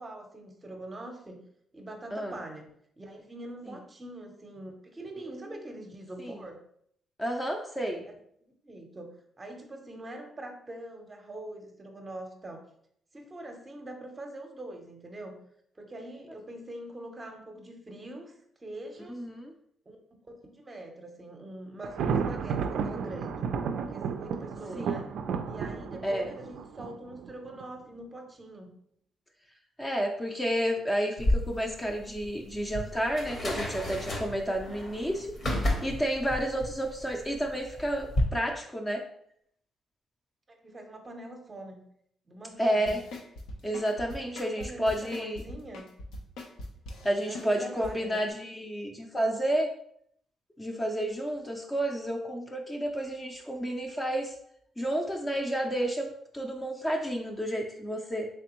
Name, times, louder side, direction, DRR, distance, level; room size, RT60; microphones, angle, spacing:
voice 1, 0.0-1.4 1.7-2.7 3.0-6.6 8.0-8.1 8.4-9.1 9.4-12.7 13.1-15.4 15.8-18.4 18.6-19.2 19.9-20.0 20.4-23.5 23.9-25.1 25.5-28.7 40.5-41.9 42.3-43.0 44.2-45.9 47.1-48.2, right 1 dB, 25° right, 4 dB, 0.7 m, -43 dB
voice 2, 7.2-8.0 19.1-19.5 24.8-25.0 26.0-26.3 29.8-39.0 42.6-43.0 43.6-45.4 47.0-49.7 50.6-54.3 54.8-58.3, right 1 dB, 15° left, 2 dB, 0.5 m, -31 dB
Thunder, 21.8-27.6, right 6 dB, 75° right, 0.3 m, -33 dB
sound 1, 31.2-38.2, left 1 dB, 45° left, 0.9 m, -32 dB
sound 2, 42.9-47.9 48.3-48.4, left 1 dB, 85° left, 0.6 m, -42 dB
3.4 x 3.3 x 3.0 m, 0.69 s
cardioid pair, 90°, 0 cm